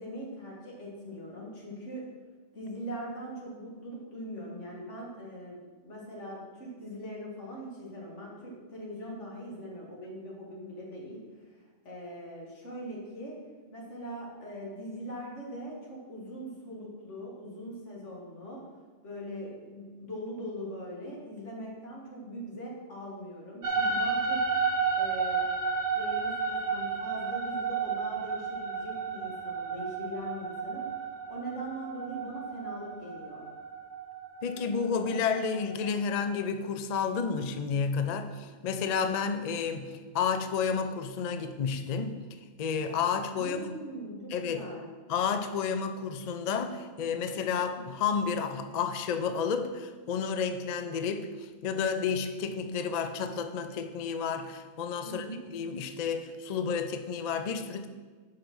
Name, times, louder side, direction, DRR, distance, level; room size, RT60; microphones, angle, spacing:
voice 1, 0.0-2.0 2.5-11.2 11.9-13.4 13.7-18.6 19.0-24.4 25.0-25.4 25.9-30.8 31.3-33.5 43.3-44.9 55.0-55.4, equal, 90° left, -3 dB, 2.1 m, -41 dB
sound 1, 23.6-35.9, right 5 dB, 50° right, 0.8 m, -32 dB
voice 2, 34.4-42.2 42.6-43.7 44.3-44.7 45.1-55.3 55.5-57.9, left 6 dB, 50° left, 8 dB, 0.5 m, -31 dB
5.7 x 5.3 x 6.0 m, 1.4 s
omnidirectional pair, 1.2 m